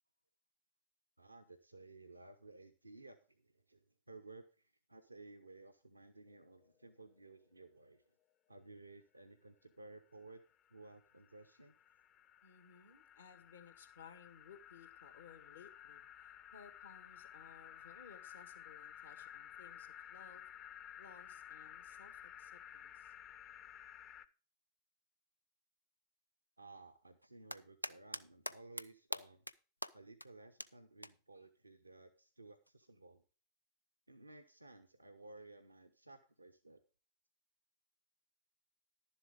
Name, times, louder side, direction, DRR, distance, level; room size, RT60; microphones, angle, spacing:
voice 1, 1.2-8.0 8.5-10.4 10.7-11.7 26.6-29.5 29.9-33.2 34.1-36.8, right 2 dB, 85° right, 7 dB, 0.7 m, -57 dB
sound 1, 6.3-6.4 6.6-6.7 7.1-7.2 10.1-24.3, left 10 dB, 30° left, 0.7 m, -55 dB
voice 2, 12.4-20.4 21.0-23.1, left 6 dB, 70° left, 9 dB, 1.7 m, -60 dB
sound 2, 27.2-28.2 28.5-28.8 29.1-29.5 29.8-29.9 30.2-30.3 30.6-30.7 31.0-31.1 32.7-32.8, equal, 90° left, 0.4 m, -41 dB
11.5 x 7.2 x 4.9 m, 0.34 s
figure-of-eight pair, 90°, 0 cm